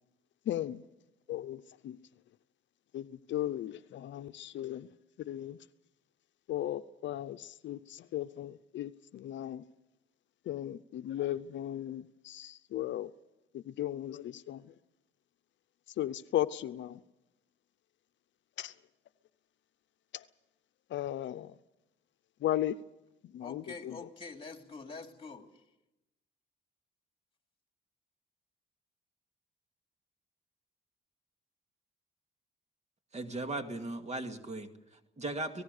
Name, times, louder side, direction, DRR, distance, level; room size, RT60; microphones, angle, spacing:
voice 1, 0.5-0.8 1.3-2.0 2.9-4.9 5.2-5.6 6.5-9.6 10.5-13.1 13.5-14.7 16.0-17.0 18.6-18.7 20.1-20.2 20.9-21.5 22.4-22.8 23.3-24.0, left 13 dB, 70° left, 0.7 m, -36 dB
voice 2, 23.4-25.5, left 4 dB, 25° left, 2.9 m, -45 dB
voice 3, 33.1-35.6, right 2 dB, 35° right, 2.2 m, -38 dB
25.5 x 18.5 x 6.7 m
cardioid pair, 90°, 20 cm